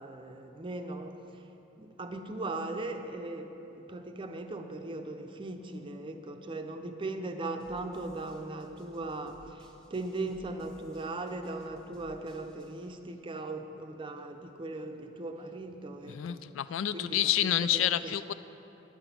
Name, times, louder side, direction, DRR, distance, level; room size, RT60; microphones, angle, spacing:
voice 1, 0.0-1.4 1.8-16.4 16.9-17.2 17.7-18.1, right 2 dB, 25° right, 6 dB, 0.6 m, -39 dB
sound 1, 7.6-12.9, equal, 5° left, 0.9 m, -59 dB
voice 2, 16.1-18.3, left 11 dB, 80° left, 14 dB, 0.3 m, -29 dB
9.8 x 5.9 x 8.3 m, 2.9 s
head